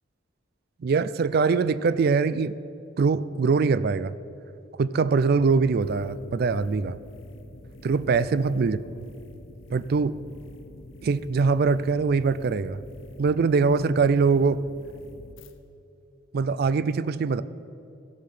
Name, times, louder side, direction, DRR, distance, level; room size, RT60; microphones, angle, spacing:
voice 1, 0.8-2.5 3.0-4.1 4.8-7.0 7.8-8.8 9.7-10.2 11.0-12.8 13.2-14.6 16.3-17.4, right 4 dB, 55° right, 16 dB, 0.4 m, -23 dB
sound 1, 5.5-15.5, left 2 dB, 80° left, 0.8 m, -46 dB
15.5 x 5.8 x 6.6 m, 2.7 s
head